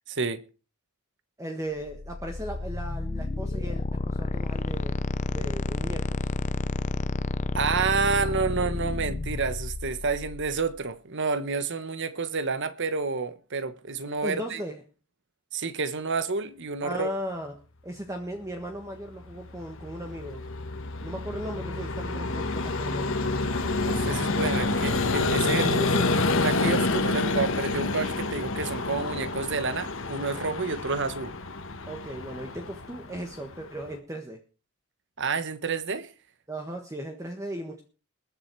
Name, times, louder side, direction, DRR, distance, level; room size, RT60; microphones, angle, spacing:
voice 1, 0.1-0.4 7.5-14.6 15.5-17.1 23.8-25.7 26.4-31.3 35.2-36.1, right 4 dB, 55° right, 1.2 m, -29 dB
voice 2, 1.4-5.0 5.3-6.3 14.2-14.8 16.8-17.6 17.8-20.4 21.0-23.1 25.6-26.1 31.9-34.4 36.5-37.8, right 1 dB, 15° right, 1.4 m, -36 dB
sound 1, 1.9-10.7, left 2 dB, 35° left, 0.6 m, -31 dB
Vehicle, 19.2-33.9, left 3 dB, 60° left, 1.5 m, -28 dB
20.5 x 7.4 x 4.7 m
head